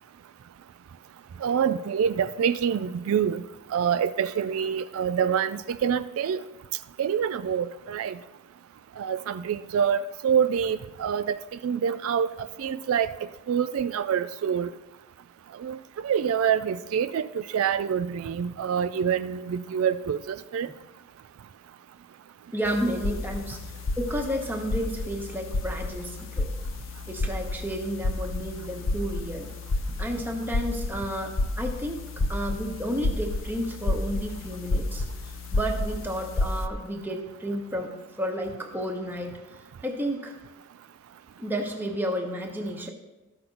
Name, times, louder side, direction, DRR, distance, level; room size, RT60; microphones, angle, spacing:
voice 1, 1.4-3.4 3.7-6.4 7.0-8.2 9.0-11.4 11.6-14.7 15.6-20.7, right 7 dB, 80° right, 12 dB, 0.3 m, -26 dB
voice 2, 22.5-23.6 24.0-26.5 27.1-29.5 30.0-39.4 39.8-40.3 41.4-42.9, equal, 10° right, 1 dB, 1.1 m, -32 dB
sound 1, 22.7-36.7, left 2 dB, 65° left, 0.6 m, -31 dB
13.5 x 6.0 x 3.9 m, 1.1 s
head